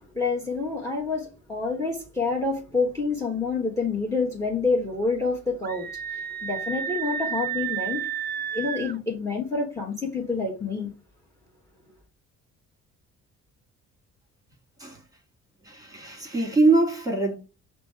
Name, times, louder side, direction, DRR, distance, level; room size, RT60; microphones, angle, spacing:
voice 1, 0.0-8.0 8.5-10.9, left 4 dB, 10° left, 1.3 m, -28 dB
Screaming, 5.6-9.0, right 8 dB, 35° right, 0.4 m, -31 dB
voice 2, 15.6-17.3, right 3 dB, 10° right, 1.8 m, -23 dB
5.1 x 2.2 x 4.5 m
cardioid pair, 90°, 30 cm